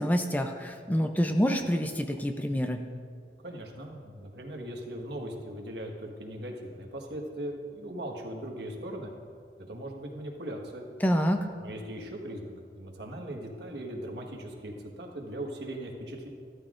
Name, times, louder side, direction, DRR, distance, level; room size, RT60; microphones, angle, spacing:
voice 1, 0.0-2.8 11.0-11.5, equal, 10° left, 5 dB, 0.5 m, -27 dB
voice 2, 3.4-9.1 9.6-10.9 11.6-16.3, right 1 dB, 75° right, 1 dB, 1.5 m, -39 dB
14.5 x 13.0 x 2.5 m, 2.1 s
head